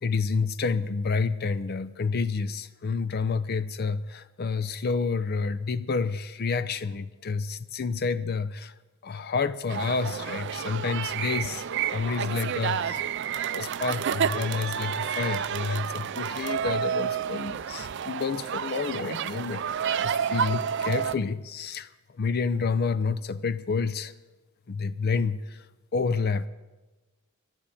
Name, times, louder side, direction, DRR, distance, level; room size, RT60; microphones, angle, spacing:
voice 1, 0.0-8.7 9.0-13.0 13.3-19.6 19.9-24.1 24.7-25.7 25.9-26.5, left 4 dB, 45° left, 15 dB, 0.5 m, -29 dB
sound 1, 9.7-21.2, right 8 dB, 55° right, 0.4 m, -30 dB
13.0 x 9.0 x 8.4 m, 1.1 s
head